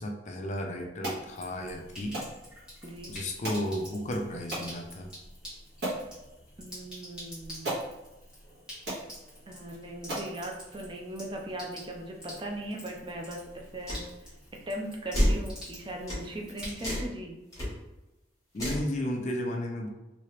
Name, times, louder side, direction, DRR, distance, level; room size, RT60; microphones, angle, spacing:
voice 1, 0.0-2.2 3.1-5.1 18.5-19.9, left 1 dB, 40° left, 2 dB, 0.4 m, -33 dB
sound 1, 1.0-1.2 2.1-2.3 3.4-3.7 4.5-4.7 5.3-5.4 5.8-6.1 7.1-7.2 7.6-7.9 8.5-8.6 8.9-9.1 9.7-9.8 10.1-10.3, right 1 dB, 60° right, 1.4 m, -34 dB
Sink (filling or washing), 1.2-17.1, equal, 5° right, 1.3 m, -48 dB
voice 2, 2.8-3.1 6.6-7.8 9.5-14.3 14.7-17.4, right 1 dB, 25° right, 0 dB, 0.5 m, -39 dB
sound 2, 13.9-14.0 15.1-15.4 16.1-16.2 16.8-17.1 17.5-17.7 18.6-18.9, equal, 20° left, 1.3 m, -27 dB
3.0 x 2.8 x 3.1 m, 1.0 s
head